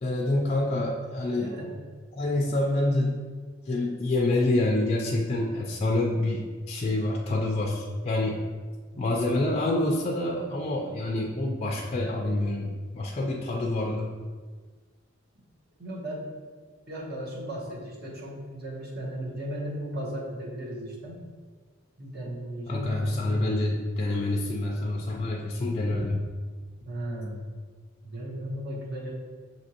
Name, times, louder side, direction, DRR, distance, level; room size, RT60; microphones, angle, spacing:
voice 1, 0.0-1.6 2.1-3.2 3.7-8.4 9.0-14.1 22.7-26.3, left 2 dB, 30° left, -1 dB, 0.4 m, -27 dB
voice 2, 1.2-1.7 8.9-9.2 15.8-16.3 16.9-21.2 22.0-23.2 26.9-27.4 28.0-29.1, right 1 dB, 55° right, -4 dB, 1.0 m, -36 dB
6.1 x 2.8 x 2.9 m, 1.5 s
head